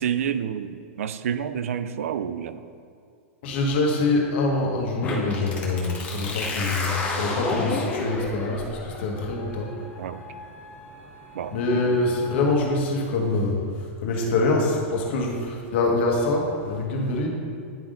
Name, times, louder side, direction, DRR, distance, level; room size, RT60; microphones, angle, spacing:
voice 1, 0.0-2.7 10.0-10.3 11.3-11.8, right 8 dB, 85° right, 12 dB, 0.4 m, -29 dB
voice 2, 3.4-9.8 11.5-17.3, left 2 dB, 55° left, -1 dB, 1.3 m, -25 dB
sound 1, 5.0-12.5, left 3 dB, 20° left, 0.9 m, -32 dB
10.5 x 3.5 x 3.8 m, 2.3 s
supercardioid pair, 160°, 7 cm